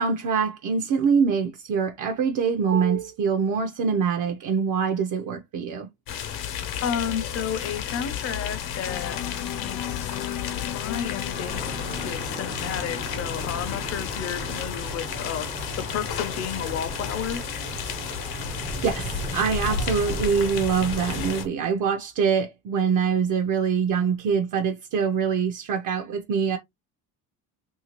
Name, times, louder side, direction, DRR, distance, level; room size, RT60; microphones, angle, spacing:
voice 1, 0.0-5.9 18.8-26.6, right 6 dB, 55° right, 0.6 m, -24 dB
sound 1, 6.1-21.5, left 8 dB, 75° left, 0.9 m, -32 dB
voice 2, 6.8-9.2 9.6-10.1 10.6-15.5 15.8-17.4, left 8 dB, 40° left, 0.6 m, -32 dB
sound 2, 8.8-14.7, left 12 dB, 90° left, 0.5 m, -38 dB
sound 3, 11.3-21.5, right 3 dB, 15° right, 0.4 m, -38 dB
3.2 x 2.7 x 2.9 m
cardioid pair, 140°, 37 cm